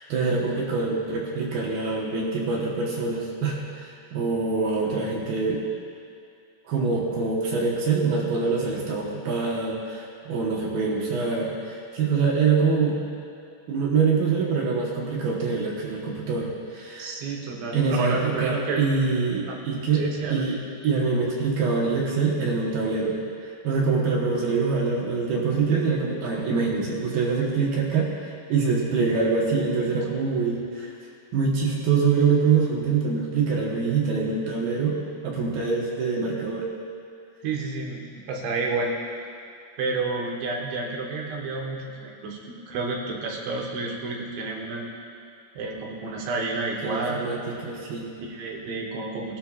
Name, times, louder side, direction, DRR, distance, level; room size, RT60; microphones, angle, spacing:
voice 1, 0.0-5.6 6.7-13.0 13.7-17.1 17.7-20.1 20.3-30.9 31.3-35.0 35.2-36.7 46.8-48.1, right 4 dB, 65° right, -3 dB, 2.8 m, -25 dB
voice 2, 17.0-18.9 19.5-19.6 20.0-20.5 37.4-38.9 39.8-44.9 45.6-47.3 48.2-49.4, right 3 dB, 90° right, -1 dB, 3.8 m, -30 dB
19.5 x 13.0 x 2.5 m, 2.5 s
omnidirectional pair, 5.1 m